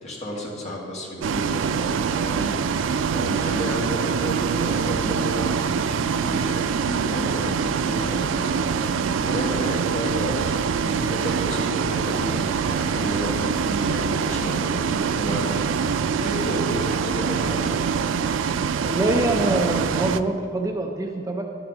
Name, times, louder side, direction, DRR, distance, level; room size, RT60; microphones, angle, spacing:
voice 1, 0.0-8.7 9.2-17.7, equal, 35° left, -3 dB, 1.9 m, -32 dB
Bus, 1.2-20.2, right 6 dB, 80° right, 0.4 m, -24 dB
voice 2, 18.8-21.4, right 2 dB, 15° right, 3 dB, 0.5 m, -24 dB
11.5 x 6.1 x 6.2 m, 2.3 s
head